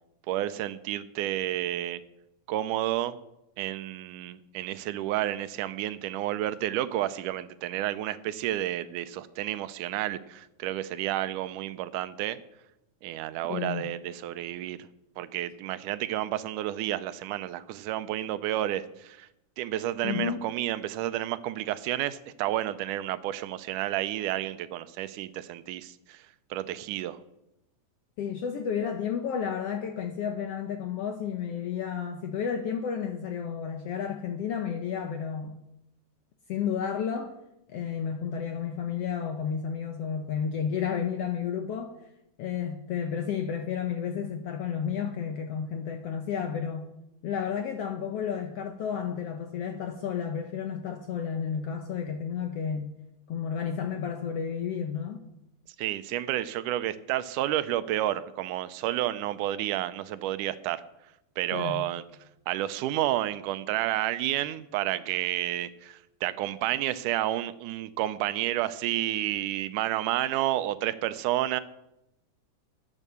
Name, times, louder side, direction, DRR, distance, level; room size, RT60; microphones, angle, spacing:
voice 1, 0.3-2.0 2.5-3.2 3.6-12.4 13.0-14.8 15.2-19.3 19.6-26.2 26.5-27.2 55.8-60.8 61.4-62.0 62.5-71.6, right 13 dB, 85° right, 13 dB, 2.1 m, -30 dB
voice 2, 13.5-13.9 20.0-20.5 28.2-35.6 36.5-37.3 37.7-42.0 42.4-46.9 47.2-52.9 53.3-55.2 61.5-61.9, left 7 dB, 75° left, 5 dB, 1.4 m, -32 dB
11.0 x 9.3 x 6.8 m, 0.86 s
omnidirectional pair, 3.6 m